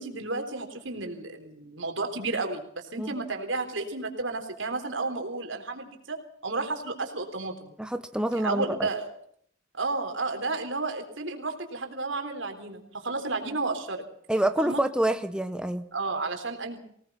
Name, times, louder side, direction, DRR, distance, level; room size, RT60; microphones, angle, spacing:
voice 1, 0.0-7.7 8.3-9.1 9.7-14.0 14.6-14.8 15.9-16.8, right 3 dB, 80° right, 5 dB, 3.9 m, -32 dB
voice 2, 7.8-8.9 14.3-15.9, right 1 dB, 5° right, 9 dB, 0.8 m, -27 dB
25.0 x 18.5 x 5.8 m, 0.65 s
head